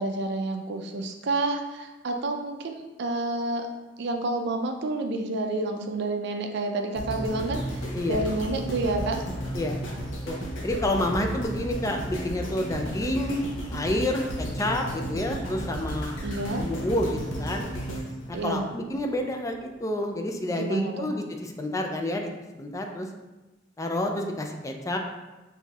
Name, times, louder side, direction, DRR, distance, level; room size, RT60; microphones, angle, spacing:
voice 1, 0.0-3.7 4.0-7.6 8.1-9.2 16.2-16.6 18.3-18.6 20.5-21.0, right 2 dB, 65° right, 4 dB, 0.4 m, -29 dB
sound 1, 7.0-19.2 19.7-19.8, right 1 dB, 85° left, 0.8 m, -33 dB
voice 2, 10.2-16.1 16.6-17.6 18.3-22.3 22.6-23.1 23.8-25.0, left 1 dB, 15° left, 3 dB, 0.3 m, -29 dB
5.8 x 2.6 x 2.3 m, 1.1 s
head